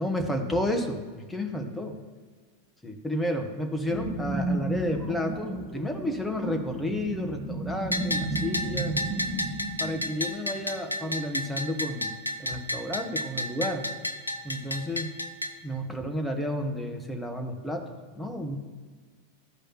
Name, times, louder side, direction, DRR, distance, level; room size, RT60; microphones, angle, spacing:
voice 1, 0.0-2.0 2.8-9.0 9.8-13.9 14.4-15.1 15.6-18.6, left 1 dB, 5° left, 3 dB, 1.1 m, -31 dB
sound 1, 3.9-10.6, right 2 dB, 25° right, 1.8 m, -33 dB
Bell, 7.9-15.5, left 1 dB, 85° left, 0.5 m, -32 dB
13.5 x 4.9 x 3.0 m, 1.5 s
figure-of-eight pair, 90°, 0 cm